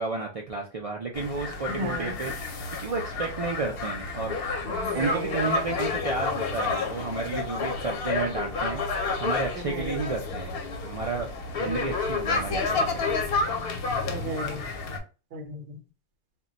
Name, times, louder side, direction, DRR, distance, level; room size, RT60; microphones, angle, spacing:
voice 1, 0.0-2.3 2.8-4.4 4.9-10.5 10.8-11.3 11.6-13.0, right 3 dB, 60° right, 0 dB, 0.3 m, -32 dB
sound 1, 1.1-15.0, left 4 dB, 65° left, 0.7 m, -30 dB
voice 2, 1.7-2.1 4.6-5.4 9.6-10.0 11.6-11.9 14.1-14.6 15.3-15.8, right 1 dB, 85° right, 5 dB, 1.0 m, -34 dB
2.2 x 2.1 x 3.8 m, 0.32 s
omnidirectional pair, 1.2 m